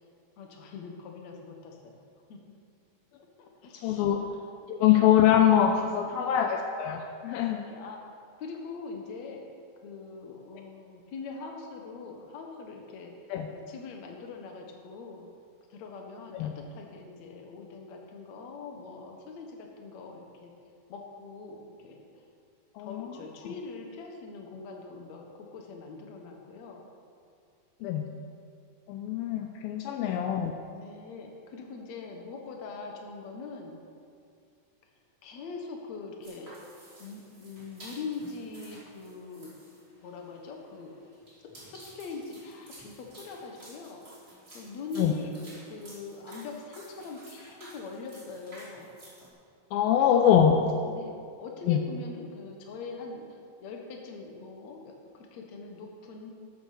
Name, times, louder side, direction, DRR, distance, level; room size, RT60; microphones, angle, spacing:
voice 1, 0.4-2.0 2.3-2.4 3.1-4.5 4.8-5.1 6.0-6.6 7.4-8.1 8.4-9.4 9.8-13.1 13.5-15.3 15.7-20.5 20.9-22.1 22.8-26.9 28.0-28.4 29.9-30.1 30.7-33.8 35.2-36.6 37.0-39.5 40.0-41.0 41.6-44.0 44.5-48.9 50.1-50.3 50.8-56.3, left 4 dB, 55° left, 1 dB, 2.4 m, -43 dB
voice 2, 3.8-4.2 4.7-7.6 13.3-13.5 16.3-16.5 22.8-23.1 27.8-28.1 28.9-30.5 45.0-45.1 49.7-50.6 51.7-51.8, left 9 dB, 80° left, 4 dB, 2.4 m, -23 dB
sound 1, 36.2-49.3, right 1 dB, 15° right, 3.8 m, -52 dB
12.5 x 9.9 x 6.8 m, 2.3 s
omnidirectional pair, 4.4 m